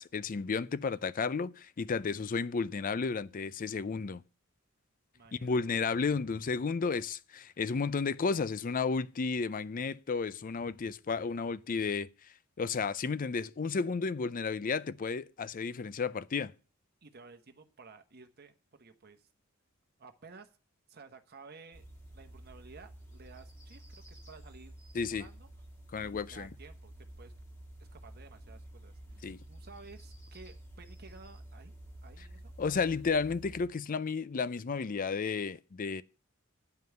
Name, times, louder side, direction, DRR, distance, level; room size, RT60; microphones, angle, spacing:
voice 1, 0.0-4.2 5.3-12.1 12.6-16.5 24.9-25.3 25.9-26.5 29.2-29.4 32.6-36.0, left 5 dB, 40° left, 0.4 m, -32 dB
voice 2, 5.1-5.6 17.0-19.3 20.0-20.5 20.9-21.8 22.1-24.8 25.1-25.5 26.0-27.3 27.8-31.7 32.0-32.5, right 4 dB, 50° right, 1.0 m, -54 dB
sound 1, 21.7-33.7, right 1 dB, 15° left, 2.0 m, -51 dB
9.3 x 5.4 x 7.8 m
head